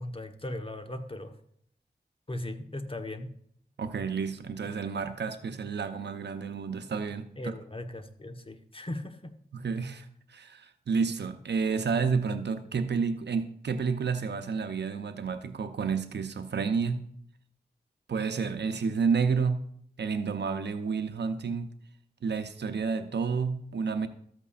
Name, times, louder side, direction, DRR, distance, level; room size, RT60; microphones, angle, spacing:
voice 1, 0.0-1.3 2.3-3.3 7.4-9.3, left 1 dB, 30° left, 6 dB, 1.2 m, -38 dB
voice 2, 3.8-7.5 9.5-17.0 18.1-19.6 20.0-21.7 22.2-24.1, right 5 dB, 90° right, 9 dB, 0.7 m, -30 dB
13.5 x 8.3 x 2.5 m, 0.66 s
cardioid pair, 50°, 17 cm